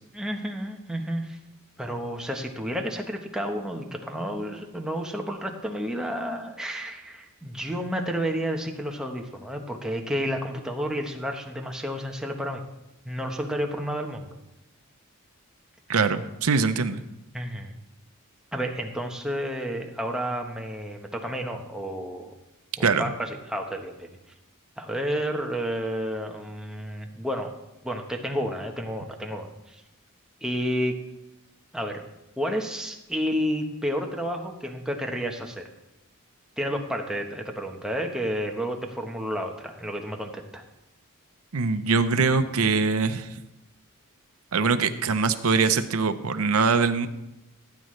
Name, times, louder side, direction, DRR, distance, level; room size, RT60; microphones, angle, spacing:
voice 1, 0.1-1.4 1.8-12.6 13.0-14.4 17.3-17.7 18.5-22.3 22.8-24.1 24.8-27.5 27.8-29.8 30.4-31.0 31.7-32.0 32.4-35.7 36.6-40.6, equal, 5° right, 2 dB, 1.1 m, -31 dB
voice 2, 15.9-17.0 22.8-23.1 41.5-43.3 44.5-47.1, right 4 dB, 75° right, 10 dB, 0.7 m, -23 dB
16.5 x 9.2 x 3.3 m, 0.94 s
head